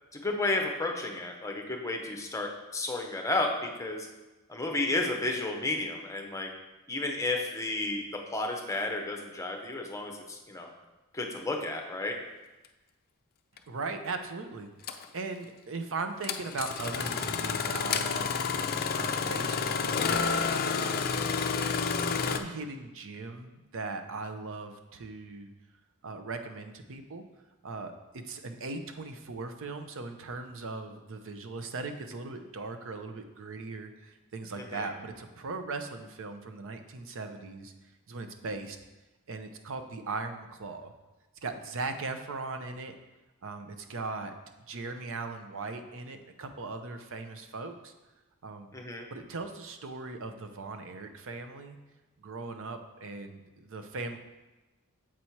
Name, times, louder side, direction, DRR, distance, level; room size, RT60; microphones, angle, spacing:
voice 1, 0.1-4.1 4.5-6.5 6.9-10.7 11.1-12.2 34.5-34.9 48.7-49.1, left 2 dB, 15° left, 2 dB, 0.8 m, -32 dB
Engine starting, 13.6-13.7 14.8-15.0 16.2-22.4, left 5 dB, 45° left, 0.4 m, -30 dB
voice 2, 13.7-18.3 18.9-21.8 22.1-25.5 26.0-27.2 27.6-37.7 38.1-38.8 39.3-40.9 41.4-42.9 43.4-44.3 44.7-47.9 48.4-48.7 49.1-51.8 52.2-54.2, right 3 dB, 60° right, 7 dB, 0.7 m, -39 dB
7.5 x 4.3 x 4.5 m, 1.1 s
head